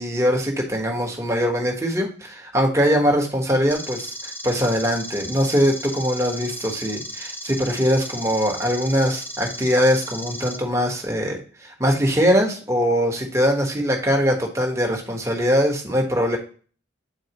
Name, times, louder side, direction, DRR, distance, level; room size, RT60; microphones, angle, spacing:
voice 1, 0.0-16.4, equal, 15° right, 0 dB, 1.3 m, -22 dB
sound 1, 3.7-10.6, left 1 dB, 10° left, 0.5 m, -35 dB
9.3 x 4.4 x 3.0 m, 0.41 s
head